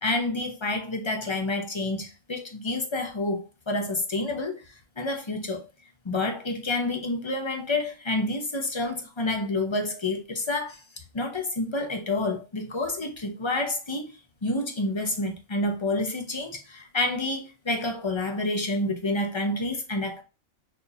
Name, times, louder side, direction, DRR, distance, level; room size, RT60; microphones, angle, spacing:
voice 1, 0.0-4.6 5.0-5.7 6.0-10.8 11.1-14.1 14.4-20.2, left 2 dB, 25° left, 0.7 m, -28 dB
6.5 x 2.8 x 2.7 m
omnidirectional pair, 1.4 m